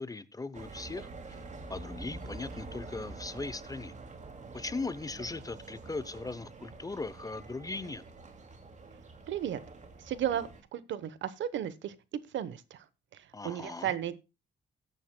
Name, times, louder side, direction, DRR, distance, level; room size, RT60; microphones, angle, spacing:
voice 1, 0.0-3.9 4.5-8.0 13.3-13.9, left 3 dB, 20° left, 0.7 m, -39 dB
sound 1, 0.5-10.6, right 3 dB, 35° right, 2.4 m, -46 dB
voice 2, 9.3-9.6 10.0-11.9 12.3-12.8 13.4-14.1, right 10 dB, 70° right, 1.0 m, -34 dB
15.5 x 9.4 x 2.2 m
cardioid pair, 90°, 20 cm